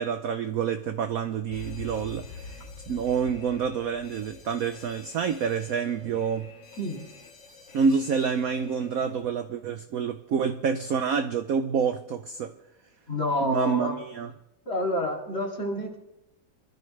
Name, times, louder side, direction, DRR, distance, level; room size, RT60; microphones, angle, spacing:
voice 1, 0.0-2.6 2.9-6.5 7.7-12.5 13.4-14.3, right 6 dB, 65° right, 0.9 m, -28 dB
Alarm, 1.5-9.2, left 4 dB, 65° left, 2.2 m, -46 dB
voice 2, 13.1-13.9 14.7-16.0, left 1 dB, 30° left, 2.7 m, -28 dB
24.0 x 13.0 x 3.3 m
omnidirectional pair, 2.2 m